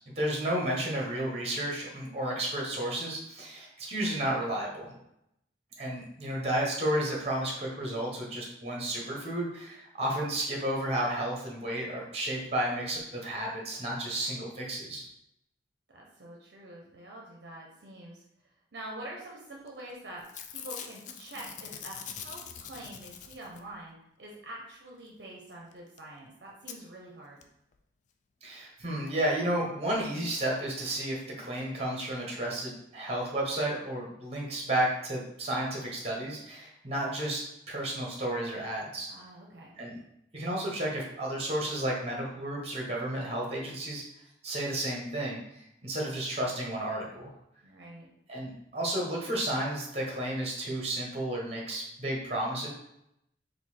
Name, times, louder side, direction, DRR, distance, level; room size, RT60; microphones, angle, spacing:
voice 1, 0.2-5.0 5.8-15.1 28.4-39.1 39.8-40.0 40.3-44.0 44.4-47.3 48.3-52.7, right 1 dB, 35° right, -2 dB, 1.1 m, -32 dB
voice 2, 15.9-18.2 18.7-27.4 39.1-39.8 47.6-48.1, right 1 dB, 60° right, -2 dB, 0.7 m, -46 dB
Packing tape duct tape / Tearing, 19.7-19.9 20.2-23.8 25.7-25.8 26.0-26.1 26.7-26.8 27.4-27.5 27.7-27.8, left 8 dB, 40° left, 0.3 m, -43 dB
3.9 x 2.7 x 4.3 m, 0.80 s
head